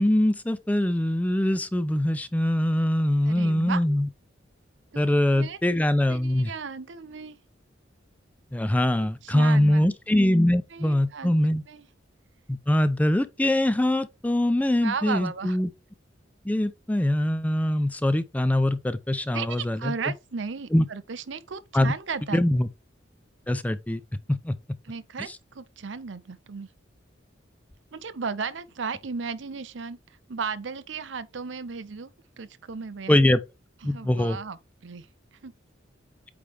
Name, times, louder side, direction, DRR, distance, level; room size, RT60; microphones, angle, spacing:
voice 1, 0.0-4.1 5.0-6.5 8.5-11.6 12.5-15.7 16.4-19.9 20.7-20.8 21.7-21.9 22.3-22.7 23.5-24.0 24.3-24.5 33.1-33.4 33.8-34.4, left 1 dB, 10° left, 0.4 m, -23 dB
voice 2, 3.2-3.8 4.9-5.0 5.3-5.6 6.1-7.4 9.2-9.9 10.7-11.3 11.7-11.8 14.8-15.6 19.3-22.4 24.8-26.7 27.9-30.0 30.3-32.1 32.4-33.2 33.8-35.1 35.4-35.5, right 5 dB, 70° right, 0.6 m, -35 dB
8.5 x 3.2 x 3.4 m
head